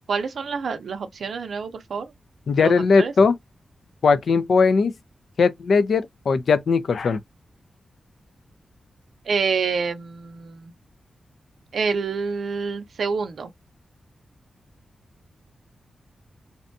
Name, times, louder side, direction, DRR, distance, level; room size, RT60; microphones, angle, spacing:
voice 1, 0.1-2.1 2.6-3.1 9.3-10.7 11.7-13.5, right 5 dB, 70° right, 0.5 m, -27 dB
voice 2, 2.5-3.4 4.0-4.9 5.4-7.2, left 4 dB, 65° left, 0.4 m, -19 dB
2.6 x 2.2 x 2.6 m
wide cardioid pair, 155°, 0 cm